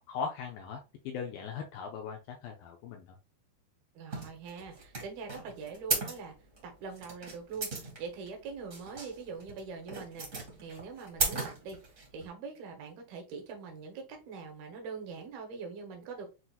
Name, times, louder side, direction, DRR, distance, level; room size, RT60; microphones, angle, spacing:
voice 1, 0.1-0.8 1.1-3.1, left 6 dB, 80° left, 2 dB, 2.1 m, -39 dB
voice 2, 3.9-6.3 6.6-11.8 12.1-16.4, right 5 dB, 70° right, 3 dB, 2.8 m, -43 dB
sound 1, 4.1-12.3, right 3 dB, 35° right, 1.2 m, -36 dB
7.9 x 2.8 x 2.3 m, 0.29 s
omnidirectional pair, 4.6 m